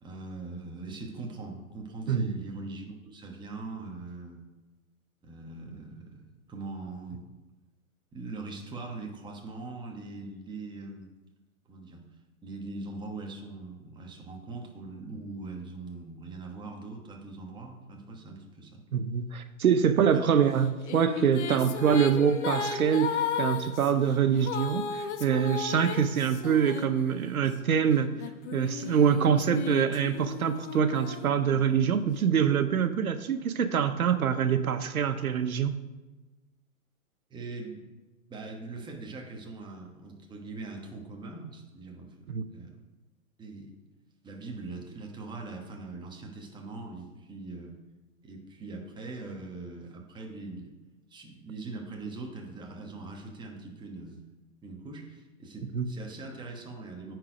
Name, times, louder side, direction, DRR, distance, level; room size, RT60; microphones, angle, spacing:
voice 1, 0.0-4.4 5.2-7.2 8.1-11.1 11.7-12.1 12.4-18.8 20.1-20.2 37.3-37.8 38.3-42.8 43.4-43.7 44.2-47.8 48.2-50.7 51.1-54.2 54.6-57.2, right 3 dB, 10° right, 1 dB, 1.2 m, -41 dB
voice 2, 18.9-28.1 28.5-35.8 42.3-42.4 55.7-55.9, right 7 dB, 80° right, 10 dB, 0.8 m, -25 dB
sound 1, 20.5-27.5 28.2-31.9, left 7 dB, 55° left, 0.9 m, -35 dB
9.5 x 4.6 x 5.0 m, 1.1 s
hypercardioid pair, 120°, 42 cm